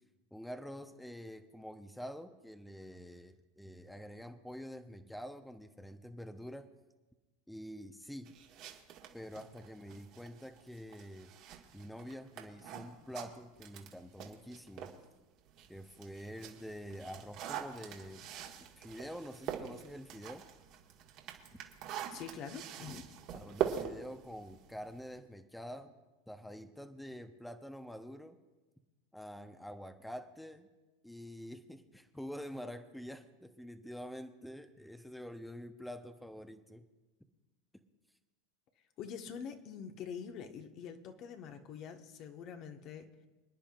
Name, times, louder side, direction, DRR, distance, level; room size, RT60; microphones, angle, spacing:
voice 1, 0.3-6.7 7.5-8.3 9.1-11.3 11.7-14.9 15.7-18.3 18.8-20.4 22.9-23.0 23.3-25.9 26.3-28.4 29.1-30.7 31.0-36.8, equal, 5° left, 7 dB, 0.9 m, -47 dB
sound 1, 8.3-15.0 15.5-25.2, right 9 dB, 55° right, 1.8 m, -44 dB
voice 2, 22.1-23.0 39.0-43.1, left 7 dB, 50° left, 5 dB, 1.4 m, -45 dB
26.5 x 10.0 x 2.5 m, 1.1 s
hypercardioid pair, 90°, 0 cm